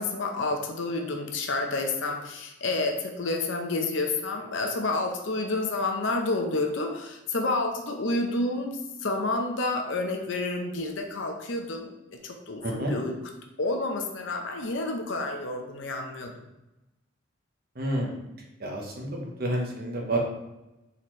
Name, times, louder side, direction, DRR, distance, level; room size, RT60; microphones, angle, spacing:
voice 1, 0.0-11.9 12.2-13.2 13.6-16.3, left 2 dB, 65° left, 3 dB, 0.6 m, -29 dB
voice 2, 12.6-12.9 17.7-18.2 18.6-20.2, right 1 dB, 50° right, -1 dB, 1.0 m, -29 dB
4.3 x 4.0 x 3.1 m, 0.95 s
head